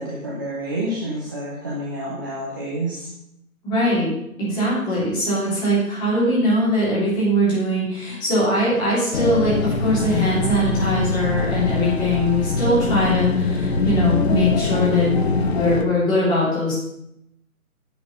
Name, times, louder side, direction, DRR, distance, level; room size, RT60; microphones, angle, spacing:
voice 1, 0.0-3.1, right 1 dB, 15° right, -5 dB, 0.8 m, -29 dB
voice 2, 3.6-4.1 4.4-15.1 15.5-16.8, equal, 10° left, -8 dB, 3.3 m, -21 dB
sound 1, 9.1-15.8, left 3 dB, 45° left, 1.2 m, -22 dB
10.0 x 7.8 x 5.3 m, 0.79 s
figure-of-eight pair, 160°, 43 cm